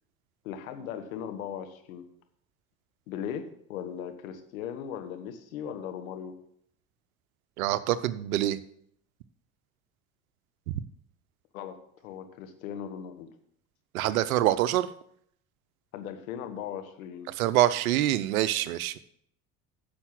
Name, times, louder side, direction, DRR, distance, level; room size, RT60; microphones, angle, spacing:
voice 1, 0.4-2.0 3.1-6.3 11.5-13.3 15.9-17.3, left 8 dB, 75° left, 7 dB, 1.4 m, -38 dB
voice 2, 7.6-8.6 13.9-14.9 17.4-19.0, right 14 dB, 75° right, 15 dB, 0.7 m, -25 dB
9.8 x 6.9 x 5.9 m, 0.68 s
hypercardioid pair, 65°, 42 cm